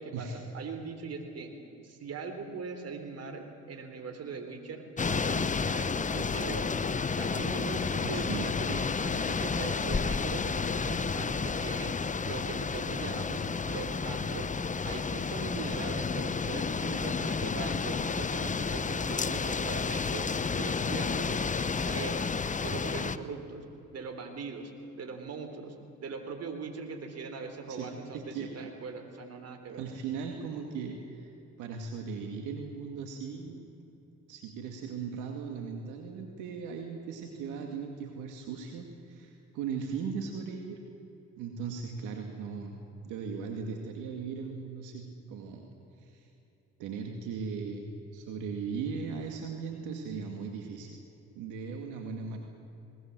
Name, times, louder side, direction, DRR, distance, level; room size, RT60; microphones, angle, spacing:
voice 1, 0.0-1.5 1.8-6.7 7.1-12.0 12.3-14.5 14.9-21.5 21.8-22.3 22.6-23.6 23.9-29.8, right 4 dB, 55° right, 7 dB, 3.6 m, -41 dB
sound 1, 5.0-23.2, left 5 dB, 25° left, 0.9 m, -31 dB
voice 2, 8.0-8.5 27.7-28.7 29.8-31.3 31.6-33.7 34.3-40.8 41.4-42.8 43.0-45.6 46.0-46.3 46.8-51.0 51.4-52.4, right 5 dB, 80° right, 3 dB, 2.1 m, -38 dB
20.5 x 20.5 x 7.6 m, 2.9 s
supercardioid pair, 70°, 30 cm